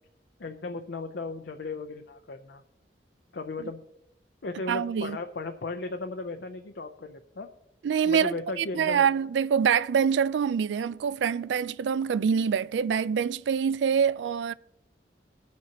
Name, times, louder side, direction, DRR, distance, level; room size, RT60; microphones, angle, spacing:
voice 1, 0.4-2.6 3.3-3.8 4.4-7.5 8.0-9.0, left 3 dB, 65° left, 0.6 m, -36 dB
voice 2, 4.7-5.2 7.8-14.5, right 7 dB, 90° right, 0.3 m, -25 dB
20.5 x 7.4 x 2.9 m
head